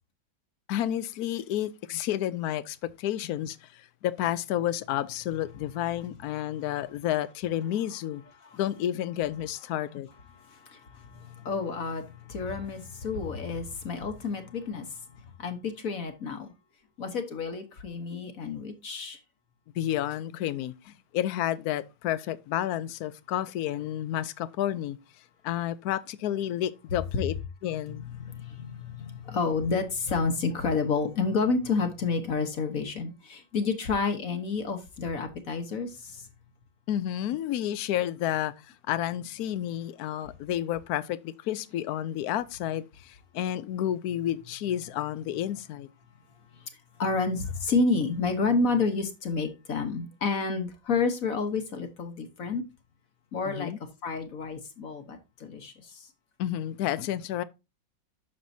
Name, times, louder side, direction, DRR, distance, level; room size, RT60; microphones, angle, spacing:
voice 1, 0.7-8.2 8.5-10.1 19.7-25.0 25.4-27.3 27.6-28.0 36.9-38.5 38.9-45.9 53.5-53.8 56.4-57.4, left 12 dB, 70° left, 0.9 m, -30 dB
voice 2, 10.4-16.5 17.0-19.2 27.1-27.2 27.9-36.3 46.5-46.7 47.0-52.6 53.3-53.7 54.0-56.1, left 4 dB, 50° left, 1.3 m, -30 dB
10.0 x 6.6 x 2.7 m
omnidirectional pair, 2.1 m